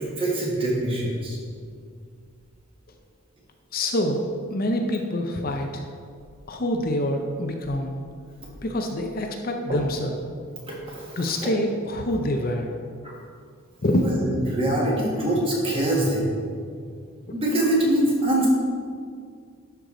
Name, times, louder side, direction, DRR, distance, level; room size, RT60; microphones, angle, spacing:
voice 1, 0.0-1.4 9.7-9.8 10.7-11.5 13.9-16.3 17.3-18.5, right 1 dB, 25° right, -4 dB, 1.6 m, -24 dB
voice 2, 3.7-5.8 6.5-7.9 8.6-10.2 11.2-12.7 13.8-14.1, left 1 dB, 45° left, 4 dB, 0.5 m, -26 dB
11.5 x 4.7 x 3.8 m, 2.2 s
head